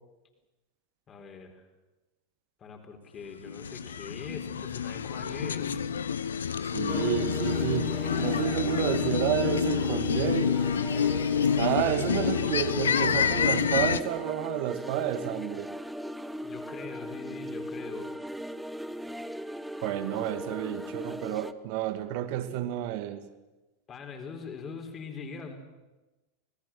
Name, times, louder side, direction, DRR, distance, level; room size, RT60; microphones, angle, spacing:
voice 1, 1.1-1.7 2.6-6.2 16.4-18.1 23.9-25.6, left 5 dB, 30° left, 4.4 m, -42 dB
sound 1, 3.4-14.0, left 7 dB, 75° left, 0.9 m, -28 dB
voice 2, 6.7-10.5 11.6-15.7 19.8-23.2, right 12 dB, 55° right, 1.9 m, -30 dB
sound 2, 6.9-21.5, equal, 5° right, 1.0 m, -38 dB
26.0 x 19.0 x 7.6 m
figure-of-eight pair, 85°, 0 cm